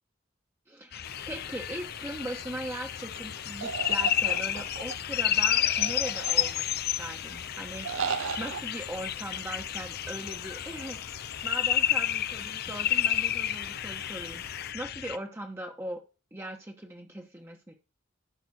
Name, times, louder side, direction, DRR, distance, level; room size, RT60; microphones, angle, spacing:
voice 1, 0.7-6.7 7.0-7.9 8.4-14.4 14.7-16.0 16.3-17.7, right 1 dB, 15° right, 2 dB, 1.1 m, -39 dB
sound 1, 0.9-15.2, left 11 dB, 55° left, 0.5 m, -31 dB
sound 2, 1.0-14.7, left 6 dB, 90° left, 0.9 m, -47 dB
sound 3, 3.6-4.9 5.6-6.8 7.8-8.6, right 6 dB, 75° right, 0.6 m, -35 dB
12.0 x 5.8 x 4.3 m, 0.31 s
head